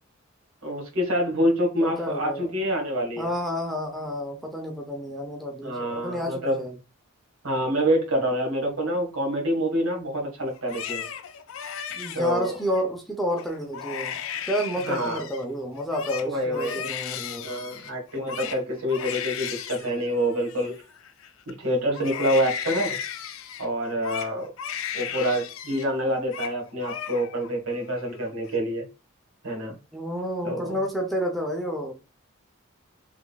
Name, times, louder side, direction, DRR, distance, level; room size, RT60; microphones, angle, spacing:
voice 1, 0.6-3.3 5.6-6.6 7.4-11.1 12.1-12.6 14.9-15.2 16.2-16.8 17.4-20.7 21.5-23.0 23.6-24.5 24.9-28.9 29.4-29.7 30.4-30.8, equal, 70° right, 1.6 m, -26 dB
voice 2, 1.8-2.5 3.2-6.8 11.9-14.2 14.5-17.4 29.9-31.9, equal, ahead, 0.7 m, -30 dB
Crying sobbing, 10.5-12.8 13.3-13.5 13.7-15.4 15.8-21.5 21.9-25.9 26.1-26.5 26.8-27.5 27.9-28.5, left 8 dB, 65° left, 0.4 m, -36 dB
3.6 x 3.5 x 2.3 m
head